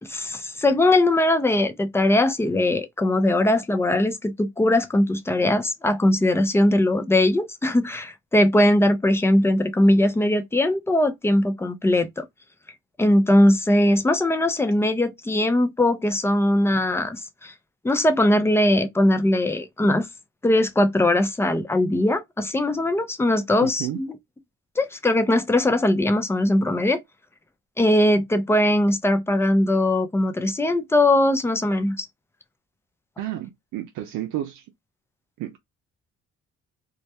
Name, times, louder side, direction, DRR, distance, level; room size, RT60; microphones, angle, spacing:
voice 1, 0.0-12.3 13.0-17.5 17.8-20.1 20.4-24.1 24.8-27.0 27.8-32.1, left 1 dB, 10° left, 0.4 m, -20 dB
voice 2, 23.6-24.0 33.2-34.7 35.4-35.6, right 13 dB, 85° right, 0.5 m, -31 dB
2.3 x 2.1 x 2.7 m
cardioid pair, 90°, 30 cm